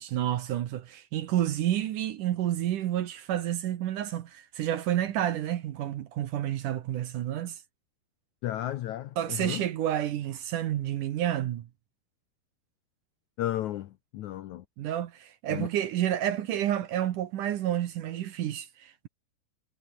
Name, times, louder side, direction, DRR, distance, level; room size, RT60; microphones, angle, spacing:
voice 1, 0.0-7.6 9.2-11.7 14.8-19.1, right 11 dB, 65° right, 2.3 m, -30 dB
voice 2, 8.4-9.6 13.4-14.6 15.5-15.7, left 13 dB, 80° left, 1.7 m, -33 dB
omnidirectional pair, 4.6 m